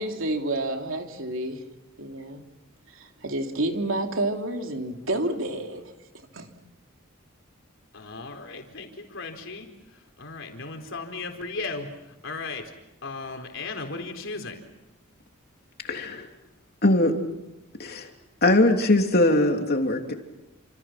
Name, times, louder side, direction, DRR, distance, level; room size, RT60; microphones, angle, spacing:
voice 1, 0.0-1.6 2.0-2.4 2.9-5.9 6.3-6.5, right 1 dB, 70° right, 3 dB, 3.2 m, -29 dB
voice 2, 7.9-9.7 10.2-11.9 12.2-12.6 13.0-14.6, left 3 dB, 65° left, 4 dB, 4.3 m, -36 dB
voice 3, 15.9-16.3 16.8-17.2 17.8-18.1 18.4-20.1, left 1 dB, 50° left, 4 dB, 3.1 m, -21 dB
29.5 x 27.5 x 6.0 m, 0.97 s
head